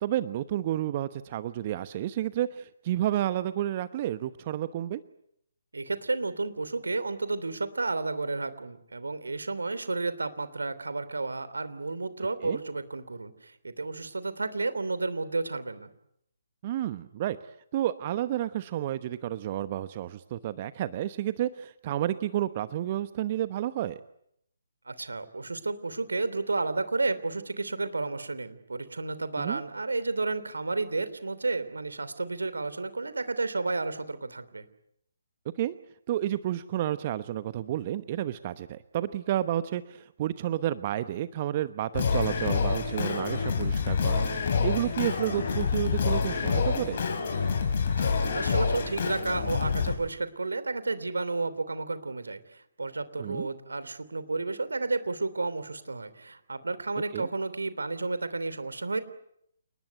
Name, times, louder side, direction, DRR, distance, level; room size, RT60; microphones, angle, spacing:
voice 1, 0.0-5.0 12.4-12.6 16.6-17.4 17.7-24.0 29.4-29.6 35.6-35.7 36.1-47.0 53.2-53.5 57.1-57.3, right 12 dB, 35° right, 13 dB, 1.0 m, -31 dB
voice 2, 5.7-15.9 24.9-34.6 48.0-59.0, right 3 dB, 75° right, 14 dB, 3.1 m, -32 dB
Singing, 41.9-49.9, left 5 dB, 45° left, 6.4 m, -27 dB
29.0 x 20.0 x 9.4 m, 0.74 s
figure-of-eight pair, 140°, 0 cm